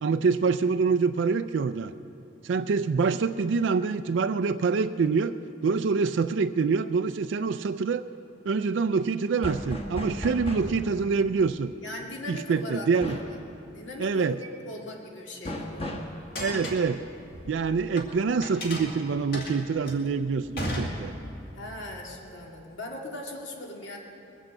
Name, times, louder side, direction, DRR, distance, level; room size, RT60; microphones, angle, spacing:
voice 1, 0.0-1.9 2.4-5.3 5.6-8.0 8.5-11.7 12.3-13.2 14.0-14.3 16.4-17.0 17.5-21.1, right 5 dB, 70° right, 10 dB, 0.4 m, -25 dB
sound 1, 9.4-10.8 13.0-13.4 15.4-16.1, left 1 dB, 30° left, 1.4 m, -34 dB
voice 2, 11.8-13.2 13.7-15.9 21.5-24.0, left 1 dB, 75° left, 0 dB, 2.2 m, -39 dB
sound 2, 16.2-18.1 18.4-21.5, equal, 50° left, 2.2 m, -35 dB
21.0 x 8.3 x 7.7 m, 2.8 s
head